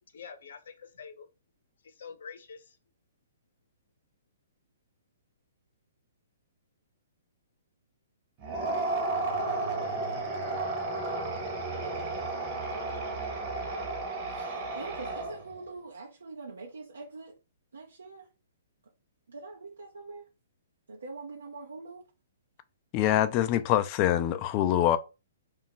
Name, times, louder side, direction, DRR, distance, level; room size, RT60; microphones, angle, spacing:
voice 1, 0.1-1.3 1.8-2.8, left 6 dB, 70° left, 0.6 m, -46 dB
sound 1, 8.4-15.6, right 2 dB, 35° right, 0.8 m, -33 dB
voice 2, 14.3-17.4 17.7-18.3 19.3-20.3 20.9-22.0, right 3 dB, 90° right, 0.6 m, -44 dB
voice 3, 22.9-25.0, left 12 dB, 35° left, 0.3 m, -24 dB
2.4 x 2.1 x 3.9 m
hypercardioid pair, 140°, 0 cm